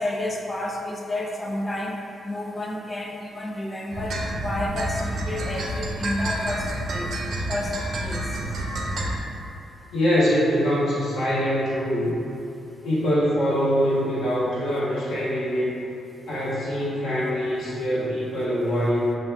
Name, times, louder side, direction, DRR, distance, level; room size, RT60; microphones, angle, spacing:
voice 1, 0.0-7.1 7.5-8.2, left 1 dB, 20° left, -1 dB, 0.5 m, -30 dB
sound 1, 3.9-9.2, right 1 dB, 70° right, 0.5 m, -29 dB
voice 2, 9.9-12.1 12.8-15.7 16.3-19.2, equal, 85° left, -10 dB, 1.4 m, -23 dB
5.8 x 2.5 x 2.3 m, 2.8 s
cardioid pair, 90°, 0 cm